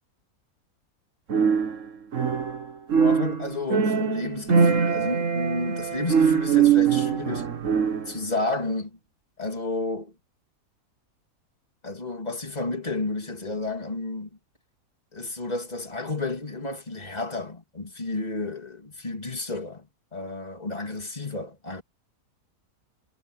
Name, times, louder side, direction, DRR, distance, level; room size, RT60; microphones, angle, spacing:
sound 1, 1.3-2.6 2.9-8.2, right 6 dB, 60° right, 1.7 m, -22 dB
voice 1, 2.9-7.5 8.1-9.0 9.4-10.1 11.8-14.3 15.1-21.8, left 2 dB, 25° left, 3.1 m, -31 dB
omnidirectional pair, 1.5 m